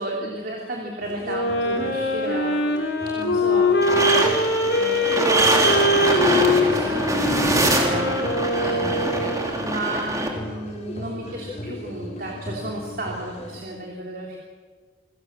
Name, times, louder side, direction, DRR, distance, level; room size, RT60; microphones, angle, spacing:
voice 1, 0.0-2.7 3.2-4.4 4.7-9.1 9.5-14.4, right 1 dB, 55° right, -2 dB, 3.3 m, -33 dB
sound 1, 1.0-13.6, left 1 dB, 40° left, 5.0 m, -38 dB
Wind instrument woodwind instrument, 1.2-9.6, left 1 dB, 85° left, 3.3 m, -23 dB
sound 2, 3.8-10.3, right 2 dB, 20° right, 3.2 m, -23 dB
28.0 x 17.0 x 7.5 m, 1.5 s
head